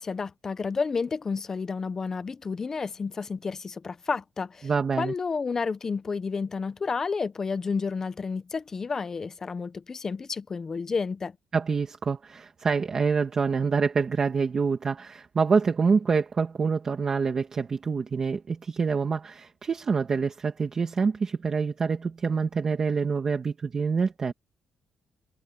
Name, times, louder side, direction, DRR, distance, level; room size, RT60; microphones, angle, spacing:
voice 1, 0.0-4.7 5.0-11.4, left 5 dB, 25° left, 0.7 m, -31 dB
voice 2, 4.6-5.1 11.5-24.3, right 5 dB, 30° right, 1.7 m, -26 dB
cardioid pair, 175°, 2 cm